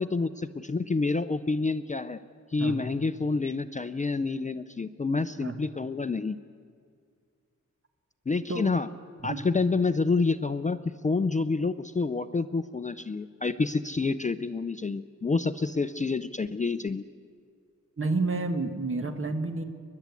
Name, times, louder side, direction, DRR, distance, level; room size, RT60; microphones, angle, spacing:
voice 1, 0.0-2.2 2.5-6.4 8.3-8.9 9.2-17.0, left 4 dB, 25° left, 11 dB, 0.4 m, -28 dB
voice 2, 18.0-19.6, right 3 dB, 45° right, 7 dB, 1.5 m, -30 dB
29.5 x 11.5 x 8.3 m, 2.2 s
wide cardioid pair, 140°, 31 cm